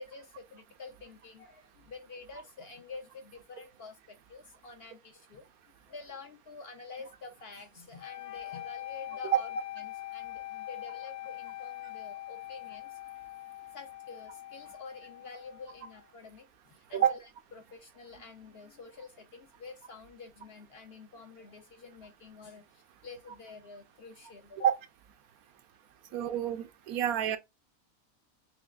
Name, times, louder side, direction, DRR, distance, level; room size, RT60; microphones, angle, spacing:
voice 1, 0.0-5.4 5.9-9.5 9.8-13.0 13.7-17.2 17.5-24.7 26.1-26.2, left 4 dB, 60° left, 0.7 m, -48 dB
sound 1, 8.0-16.1, left 15 dB, 90° left, 1.1 m, -43 dB
voice 2, 26.1-27.4, right 9 dB, 75° right, 1.0 m, -28 dB
6.1 x 2.4 x 2.3 m
omnidirectional pair, 1.6 m